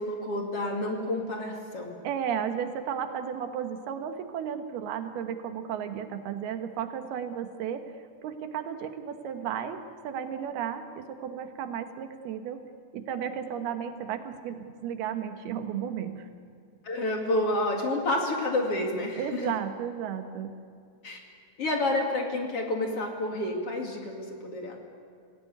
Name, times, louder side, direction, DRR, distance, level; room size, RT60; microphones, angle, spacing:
voice 1, 0.0-2.0 16.8-19.5 21.0-21.2 21.6-24.8, left 1 dB, 40° left, 1 dB, 3.0 m, -29 dB
voice 2, 2.0-7.8 8.2-12.6 12.9-16.3 19.2-20.5, right 8 dB, 85° right, 7 dB, 3.4 m, -34 dB
26.5 x 17.0 x 9.6 m, 2.3 s
omnidirectional pair, 4.4 m